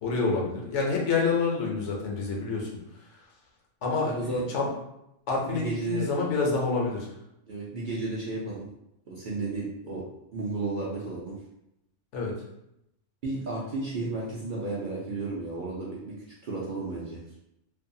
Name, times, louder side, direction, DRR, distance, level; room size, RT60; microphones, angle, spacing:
voice 1, 0.0-2.7 3.8-4.7 5.3-7.1 12.1-12.3, left 4 dB, 70° left, -1 dB, 1.0 m, -27 dB
voice 2, 4.0-4.5 5.4-6.1 7.5-8.7 9.1-10.1 10.3-11.3 13.2-16.1 16.4-17.2, right 3 dB, 55° right, -6 dB, 0.6 m, -33 dB
2.6 x 2.3 x 2.6 m, 0.82 s
omnidirectional pair, 1.3 m